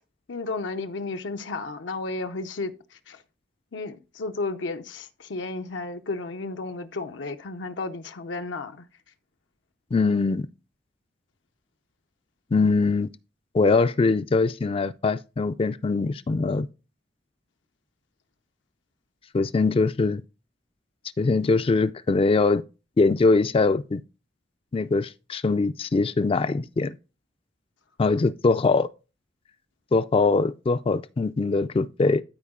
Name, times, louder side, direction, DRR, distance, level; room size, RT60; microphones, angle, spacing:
voice 1, 0.3-3.2 3.7-8.9, left 3 dB, 80° left, 0.7 m, -33 dB
voice 2, 9.9-10.5 12.5-13.1 13.5-16.7 19.3-20.2 21.2-22.6 23.0-24.0 24.7-26.9 28.0-28.9 29.9-32.2, left 3 dB, 30° left, 0.3 m, -22 dB
12.5 x 4.8 x 3.6 m
head